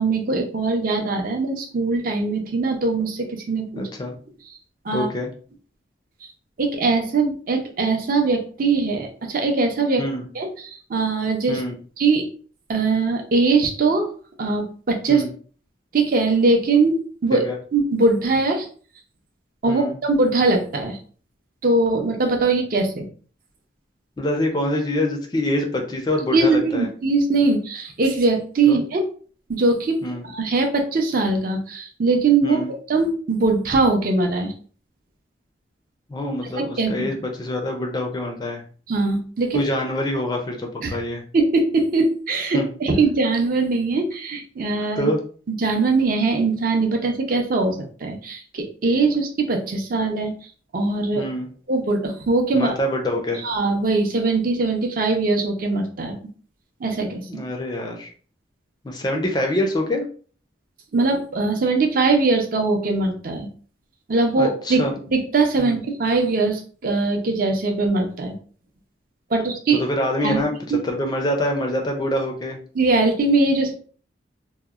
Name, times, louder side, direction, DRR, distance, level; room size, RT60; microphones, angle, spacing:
voice 1, 0.0-3.9 4.8-5.1 6.6-10.1 10.3-11.6 12.0-12.2 12.7-14.1 14.4-15.2 15.9-17.4 17.7-18.7 19.6-21.0 21.6-23.0 26.3-29.0 29.5-34.5 36.6-36.9 38.9-39.6 40.8-41.0 41.3-45.1 45.6-50.4 50.7-51.3 51.7-52.7 53.4-56.2 56.8-57.4 60.9-63.5 64.1-64.8 65.1-68.3 69.3-69.8 70.2-70.8 72.7-73.7, right 3 dB, 50° right, 4 dB, 0.5 m, -21 dB
voice 2, 3.8-4.1 4.9-5.3 10.0-10.2 11.5-11.7 15.1-15.3 17.3-17.5 19.7-19.9 24.2-26.9 28.7-28.8 30.0-30.2 32.4-32.7 36.1-38.6 39.5-41.2 42.5-42.7 45.0-45.2 51.2-51.5 52.5-53.4 57.3-58.1 58.8-60.0 64.4-65.0 65.6-65.8 69.8-70.5 70.8-72.6, left 1 dB, 20° left, 2 dB, 0.4 m, -25 dB
2.8 x 2.0 x 2.3 m, 0.42 s
head